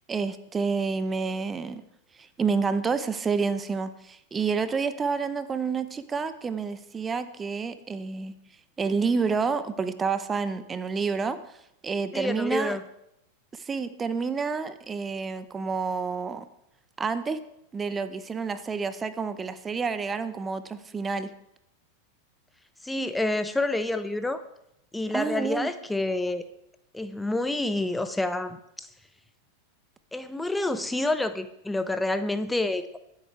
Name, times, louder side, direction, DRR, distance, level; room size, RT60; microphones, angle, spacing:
voice 1, 0.1-1.8 2.1-8.3 8.8-11.4 11.8-12.8 13.5-16.5 17.0-17.4 17.7-21.3 25.1-25.7, right 5 dB, 20° right, 13 dB, 0.9 m, -29 dB
voice 2, 12.1-12.8 22.8-24.4 24.9-26.4 26.9-28.9 30.1-33.0, left 2 dB, 5° left, 11 dB, 0.8 m, -28 dB
23.5 x 8.2 x 4.7 m, 0.79 s
figure-of-eight pair, 90°, 0 cm